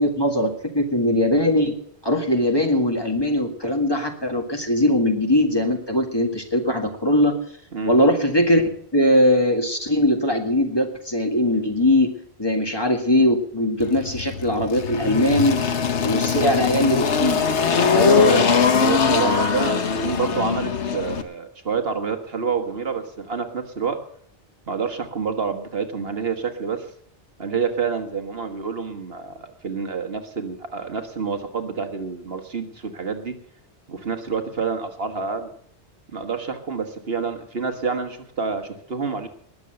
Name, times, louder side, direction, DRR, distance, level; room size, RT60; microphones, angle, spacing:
voice 1, 0.0-1.8 2.0-7.4 7.9-12.1 12.4-15.6 16.0-17.5 17.9-18.5, left 1 dB, 20° left, 3 dB, 1.8 m, -20 dB
Engine, 13.8-21.2, left 6 dB, 80° left, 1.4 m, -21 dB
voice 2, 18.8-24.0 24.7-26.9 27.4-33.3 33.9-35.5 36.1-39.3, right 5 dB, 60° right, 7 dB, 1.6 m, -28 dB
20.0 x 7.0 x 7.7 m, 0.64 s
omnidirectional pair, 1.1 m